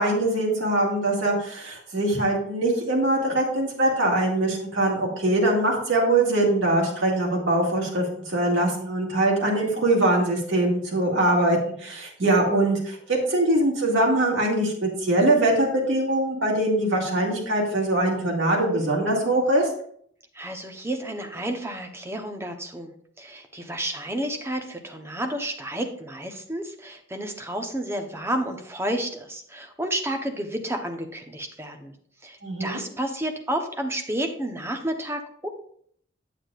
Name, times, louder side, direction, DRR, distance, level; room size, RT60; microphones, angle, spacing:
voice 1, 0.0-19.7 32.4-32.8, right 1 dB, 80° right, -1 dB, 2.1 m, -22 dB
voice 2, 20.3-31.9 32.2-35.5, right 1 dB, 15° right, 5 dB, 0.8 m, -31 dB
8.5 x 7.8 x 2.4 m, 0.63 s
head